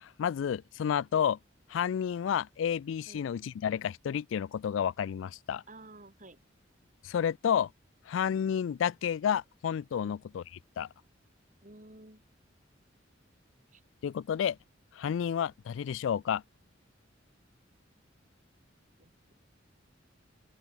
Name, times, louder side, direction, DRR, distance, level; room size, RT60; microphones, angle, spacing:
voice 1, 0.0-1.4 1.7-5.6 7.0-7.7 8.1-10.4 10.8-10.9 14.0-14.6 14.9-16.4, left 8 dB, 80° left, 0.3 m, -30 dB
voice 2, 5.7-6.4 10.0-10.2 11.6-12.2 13.7-13.8 19.0-19.3, right 2 dB, 40° right, 5.6 m, -52 dB
open air
head